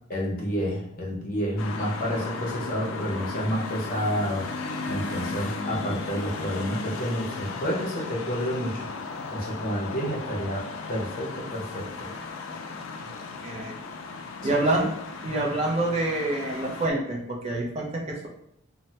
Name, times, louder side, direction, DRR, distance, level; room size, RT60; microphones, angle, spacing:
voice 1, 0.1-4.5 4.9-8.8 9.3-12.1 14.4-14.9, equal, 45° left, -3 dB, 0.6 m, -30 dB
sound 1, 1.6-16.9, left 4 dB, 85° left, 0.3 m, -36 dB
voice 2, 13.4-13.7 14.4-14.9 15.2-18.3, right 2 dB, 30° right, -2 dB, 0.4 m, -27 dB
3.1 x 2.0 x 2.7 m, 0.74 s
head